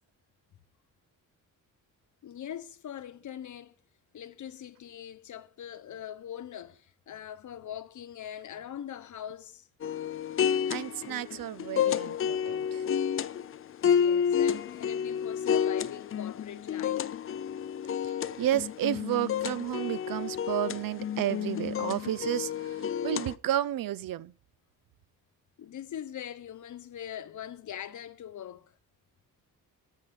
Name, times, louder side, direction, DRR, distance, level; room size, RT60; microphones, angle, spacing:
voice 1, 2.2-3.7 4.1-9.7 13.8-17.1 25.6-28.7, left 10 dB, 55° left, 1.0 m, -42 dB
sound 1, 9.8-23.4, left 8 dB, 40° left, 0.5 m, -30 dB
voice 2, 10.7-12.8 18.4-22.8 23.0-24.3, right 12 dB, 70° right, 0.6 m, -31 dB
13.5 x 6.3 x 6.5 m
wide cardioid pair, 175°, 35 cm